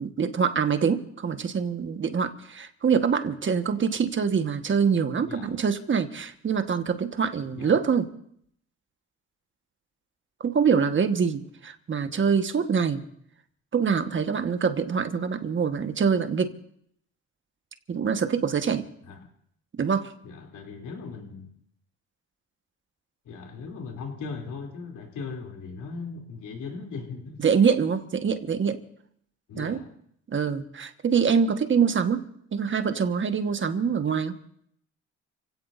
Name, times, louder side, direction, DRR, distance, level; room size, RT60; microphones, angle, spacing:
voice 1, 0.0-8.1 10.4-13.0 13.7-16.5 17.9-18.9 19.8-20.1 27.4-28.8 29.6-29.8 30.3-34.4, right 6 dB, 40° right, 7 dB, 1.4 m, -25 dB
voice 2, 5.2-5.6 7.5-7.8 19.1-19.3 20.2-21.5 23.2-27.4 29.5-29.9, left 4 dB, 80° left, 1 dB, 3.0 m, -38 dB
29.5 x 16.5 x 2.6 m, 0.68 s
cardioid pair, 90°, 30 cm